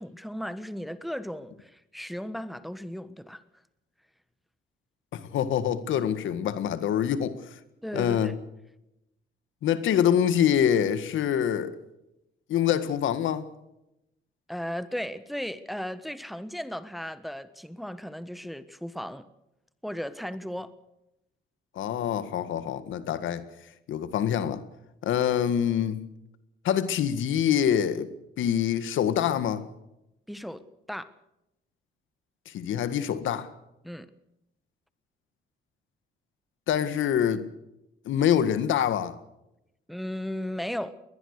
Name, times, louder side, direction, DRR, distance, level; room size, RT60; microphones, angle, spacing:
voice 1, 0.0-3.4 7.8-8.3 14.5-19.2 19.8-20.7 30.3-31.1 33.8-34.1 39.9-40.9, equal, ahead, 1.4 m, -36 dB
voice 2, 5.1-7.4 7.9-8.3 9.6-11.7 12.5-13.5 21.8-23.5 23.9-24.6 25.0-26.0 26.6-28.1 28.4-29.6 32.5-33.5 36.7-37.4 38.1-39.2, left 9 dB, 80° left, 1.8 m, -25 dB
21.5 x 21.0 x 6.7 m
cardioid pair, 90°, 20 cm